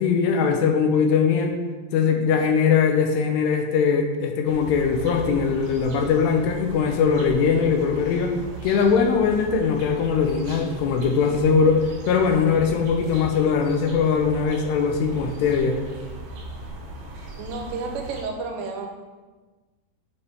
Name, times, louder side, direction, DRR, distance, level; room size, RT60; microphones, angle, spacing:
voice 1, 0.0-1.6 1.9-8.4 8.6-15.8, left 6 dB, 85° left, 4 dB, 2.7 m, -21 dB
sound 1, 4.5-18.2, right 2 dB, 65° right, 2.4 m, -38 dB
voice 2, 17.4-18.9, right 4 dB, 90° right, 3 dB, 3.0 m, -31 dB
8.5 x 3.3 x 4.6 m, 1.3 s
omnidirectional pair, 5.0 m